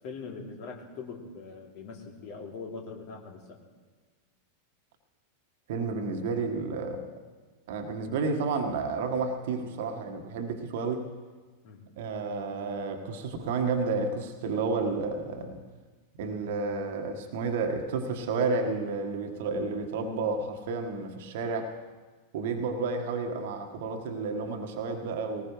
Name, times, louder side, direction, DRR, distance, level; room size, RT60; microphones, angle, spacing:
voice 1, 0.0-3.6 11.6-11.8, left 4 dB, 45° left, 0 dB, 2.8 m, -42 dB
voice 2, 5.7-7.1 7.7-11.1 12.0-15.6 16.2-21.8 22.3-25.4, right 4 dB, 55° right, 5 dB, 1.6 m, -31 dB
20.0 x 19.5 x 3.2 m, 1.4 s
figure-of-eight pair, 90°, 0 cm